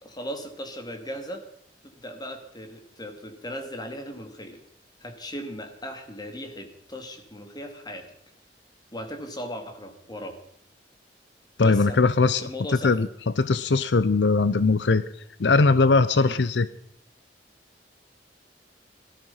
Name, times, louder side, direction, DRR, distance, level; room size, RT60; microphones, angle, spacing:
voice 1, 0.0-1.4 1.8-4.6 5.0-8.1 8.9-10.4 11.6-12.0 12.4-13.0 16.1-16.3, equal, 25° left, 6 dB, 2.5 m, -37 dB
voice 2, 11.6-12.5 12.8-13.1 13.4-15.0 15.4-16.7, left 3 dB, 75° left, 15 dB, 0.6 m, -20 dB
18.0 x 12.5 x 5.6 m, 0.68 s
head